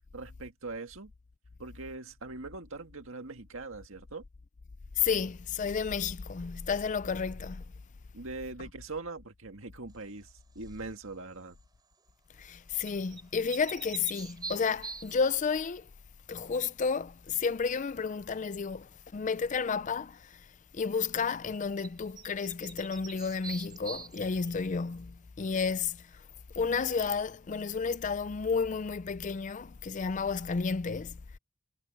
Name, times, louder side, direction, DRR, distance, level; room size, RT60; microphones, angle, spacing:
voice 1, 0.1-1.1 1.6-4.2 8.1-11.6, right 3 dB, 60° right, 2.0 m, -42 dB
voice 2, 5.0-7.6 12.4-15.9 16.3-20.4 20.7-26.0 26.6-31.2, left 5 dB, 35° left, 0.4 m, -31 dB
sound 1, 10.6-11.0 12.8-15.4 21.8-21.9 22.2-24.6, right 4 dB, 20° right, 3.4 m, -44 dB
head